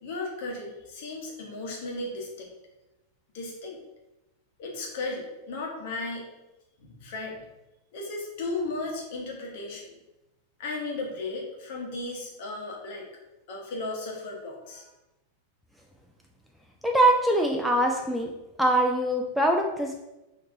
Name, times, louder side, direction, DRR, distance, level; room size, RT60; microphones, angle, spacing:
voice 1, 0.0-2.5 3.3-3.8 4.6-6.3 6.8-7.4 7.9-9.9 10.6-13.0 13.5-14.9, left 2 dB, 50° left, -1 dB, 1.2 m, -35 dB
voice 2, 16.8-18.3 18.6-20.0, right 1 dB, ahead, 1 dB, 0.4 m, -23 dB
5.7 x 3.0 x 2.7 m, 0.98 s
figure-of-eight pair, 90°, 0 cm